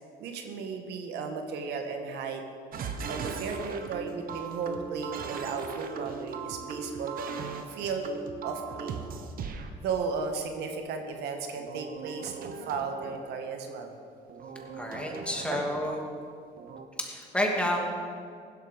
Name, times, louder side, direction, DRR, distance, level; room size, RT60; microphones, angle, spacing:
voice 1, 0.2-2.4 3.1-7.2 7.7-8.1 8.4-9.0 9.8-13.9 15.4-15.6, right 5 dB, 80° right, 5 dB, 1.6 m, -35 dB
sound 1, 2.7-9.7 11.6-13.2 14.3-16.0 16.6-16.8, right 5 dB, 60° right, 1.3 m, -38 dB
voice 2, 14.7-16.0 17.0-17.8, left 1 dB, 5° left, 0 dB, 2.5 m, -30 dB
16.0 x 12.5 x 5.2 m, 2.3 s
cardioid pair, 110°, 17 cm